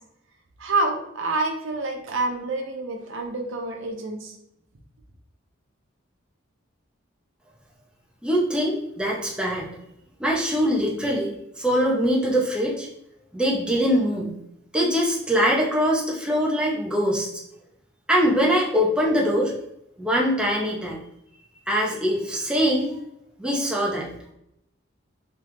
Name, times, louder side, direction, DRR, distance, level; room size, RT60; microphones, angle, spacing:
voice 1, 0.6-4.4, right 2 dB, 70° right, 3 dB, 0.6 m, -27 dB
voice 2, 8.2-9.7 10.2-12.9 13.3-14.4 14.7-17.3 18.1-19.5 20.0-21.0 21.7-23.0 23.4-24.1, equal, 5° right, -3 dB, 0.5 m, -23 dB
3.0 x 2.3 x 3.3 m, 0.79 s
head